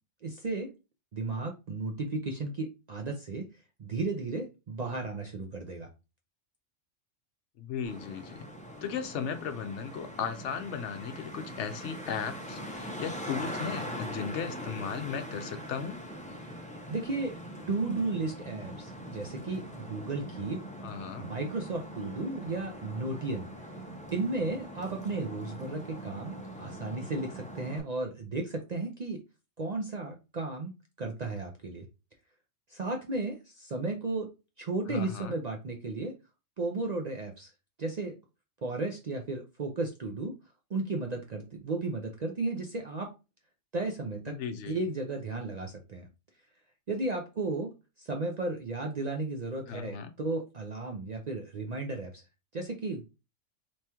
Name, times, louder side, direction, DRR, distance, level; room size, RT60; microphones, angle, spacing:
voice 1, 0.2-0.7 1.1-3.5 3.8-5.9 16.9-17.4 17.7-20.6 21.2-23.5 24.1-29.2 29.6-30.7 31.0-31.9 32.7-34.3 34.6-36.1 36.6-37.5 37.8-38.2 38.6-40.3 40.7-43.1 43.7-44.4 44.7-46.1 46.9-47.7 48.0-52.2 52.5-53.1, right 3 dB, 50° right, 0.5 m, -34 dB
voice 2, 7.6-8.4 8.8-16.0 20.8-21.3 34.9-35.4 44.3-44.8 49.7-50.1, left 7 dB, 75° left, 0.9 m, -36 dB
Traffic noise roadway noise, 7.8-27.8, equal, 10° left, 0.6 m, -42 dB
3.0 x 2.9 x 3.4 m
omnidirectional pair, 1.3 m